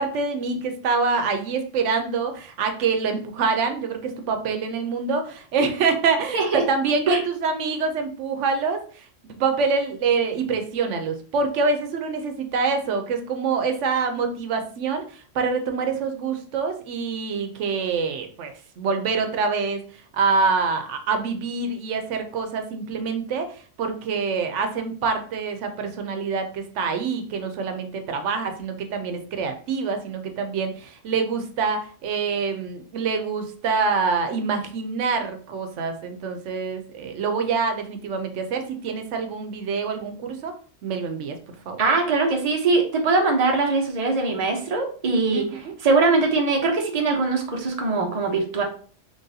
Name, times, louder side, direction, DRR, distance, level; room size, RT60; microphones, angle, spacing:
voice 1, 0.0-40.5 40.8-41.8 45.3-45.7, right 4 dB, 85° right, 6 dB, 0.9 m, -26 dB
voice 2, 41.8-48.6, right 3 dB, 35° right, 2 dB, 0.8 m, -22 dB
3.8 x 3.3 x 2.7 m, 0.43 s
omnidirectional pair, 1.2 m